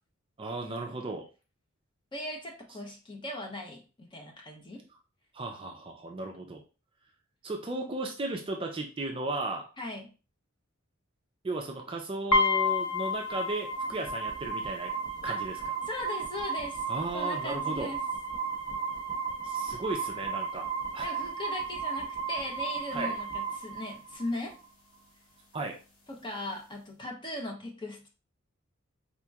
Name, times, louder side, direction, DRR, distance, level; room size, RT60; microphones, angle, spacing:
voice 1, 0.4-1.3 5.3-6.6 7.4-9.7 11.4-14.9 15.2-15.6 16.9-17.9 19.4-20.7 20.9-21.1 22.9-23.2 25.5-25.8, right 2 dB, 25° right, 2 dB, 0.4 m, -35 dB
voice 2, 2.1-4.8 9.8-10.1 15.3-15.4 15.9-16.8 17.1-18.0 21.0-24.5 26.1-28.1, left 1 dB, 25° left, 1 dB, 0.8 m, -38 dB
sound 1, 12.3-24.3, right 1 dB, 80° left, 1.0 m, -32 dB
4.2 x 2.9 x 2.4 m, 0.34 s
head